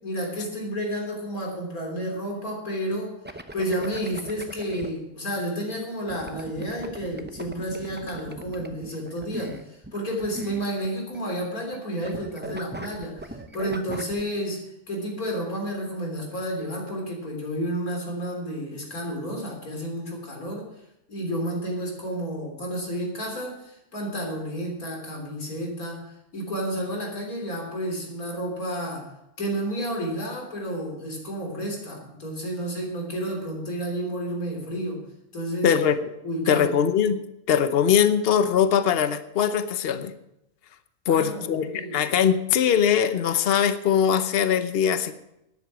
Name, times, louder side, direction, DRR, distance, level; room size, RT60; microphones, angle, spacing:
voice 1, 0.0-3.2 3.5-20.7 21.1-29.1 29.4-35.0 35.3-35.8 36.2-36.8 41.1-42.0, equal, 80° left, 0 dB, 4.0 m, -31 dB
sound 1, 3.2-4.9 6.1-11.2 11.4-11.8 12.0-14.2, right 1 dB, 10° right, 0.5 m, -39 dB
voice 2, 35.6-36.0 36.5-37.2 37.5-40.1 41.1-45.1, left 8 dB, 50° left, 11 dB, 1.0 m, -21 dB
12.0 x 10.5 x 6.2 m, 0.85 s
omnidirectional pair, 1.5 m